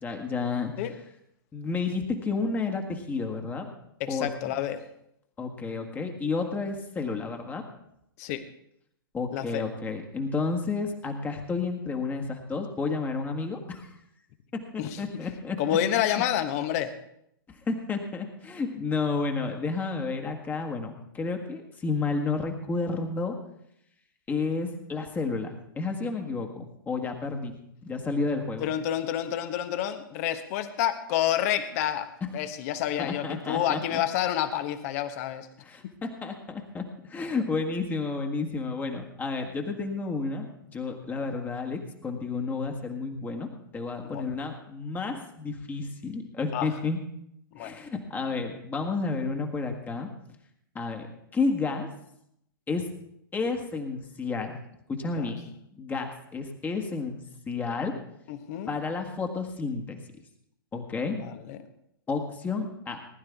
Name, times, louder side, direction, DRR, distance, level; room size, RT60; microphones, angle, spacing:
voice 1, 0.0-0.7 1.5-3.7 4.1-4.3 5.4-7.6 9.1-13.9 14.5-14.6 15.0-15.6 17.5-23.4 24.3-28.7 33.0-34.0 35.6-36.8 37.1-47.0 47.6-50.1 50.7-51.1 51.3-51.9 52.7-52.9 53.3-54.6 54.9-55.4 55.7-57.2 57.5-58.0 58.7-60.0 60.7-61.3 62.1-63.0, left 4 dB, 15° left, 3 dB, 1.7 m, -31 dB
voice 2, 4.0-4.8 8.2-8.4 9.3-9.6 14.8-15.0 15.6-16.9 28.6-35.5 44.0-44.3 46.5-46.7 47.5-47.8 55.0-55.3 58.3-58.7 61.2-61.6, left 11 dB, 45° left, 10 dB, 1.3 m, -29 dB
19.5 x 11.5 x 3.6 m, 0.76 s
figure-of-eight pair, 105°, 12 cm